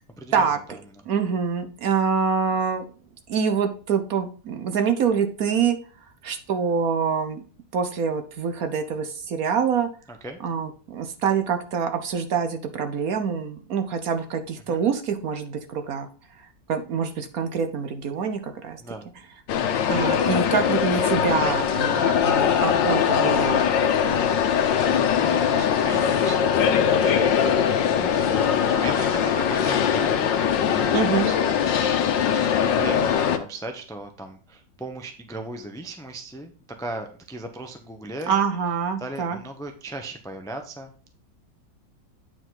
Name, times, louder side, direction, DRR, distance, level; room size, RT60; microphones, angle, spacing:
voice 1, 0.2-1.0 10.1-10.4 14.7-14.8 18.8-19.1 23.9-24.2 24.7-27.7 28.3-32.0 32.2-36.5 36.8-38.4 39.0-41.1, right 2 dB, 5° left, 5 dB, 0.4 m, -37 dB
voice 2, 1.1-2.8 3.3-5.8 6.2-7.4 7.7-9.9 10.4-16.1 16.7-18.8 19.9-23.6 30.9-31.3 38.3-39.4, right 6 dB, 60° right, 7 dB, 1.2 m, -25 dB
sound 1, 19.5-33.4, left 8 dB, 90° left, 1.5 m, -21 dB
8.8 x 4.9 x 3.9 m, 0.38 s
omnidirectional pair, 1.9 m